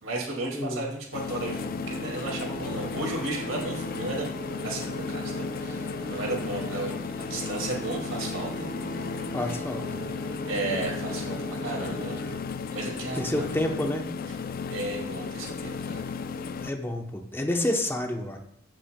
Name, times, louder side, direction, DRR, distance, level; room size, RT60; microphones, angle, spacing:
voice 1, 0.0-4.4 4.6-8.7 10.5-12.2 12.7-13.4 14.7-16.0, right 2 dB, 75° right, -1 dB, 2.2 m, -34 dB
voice 2, 0.5-0.8 9.3-10.0 13.1-14.1 16.6-18.4, left 1 dB, 10° left, 3 dB, 0.7 m, -29 dB
sound 1, 1.1-16.7, left 5 dB, 45° left, 0.3 m, -35 dB
sound 2, 1.5-12.9, right 1 dB, 65° left, 1.5 m, -40 dB
14.0 x 5.6 x 2.2 m, 0.71 s
head